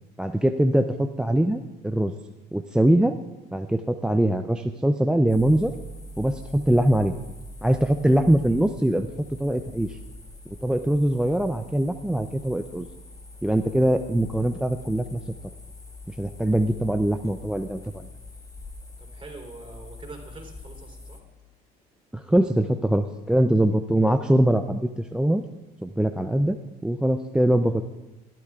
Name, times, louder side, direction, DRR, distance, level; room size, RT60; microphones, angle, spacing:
voice 1, 0.2-2.1 2.5-3.2 3.5-5.7 6.2-7.1 7.6-9.1 9.4-10.0 10.5-12.9 13.4-15.3 16.1-18.1 22.1-25.4 25.8-26.6 26.8-27.8, right 1 dB, 5° right, 9 dB, 0.5 m, -22 dB
sound 1, 5.3-21.2, left 1 dB, 15° left, 1.2 m, -43 dB
voice 2, 19.0-21.2, right 3 dB, 25° right, 1 dB, 3.6 m, -44 dB
18.5 x 12.0 x 2.4 m, 1.0 s
hypercardioid pair, 70°, 20 cm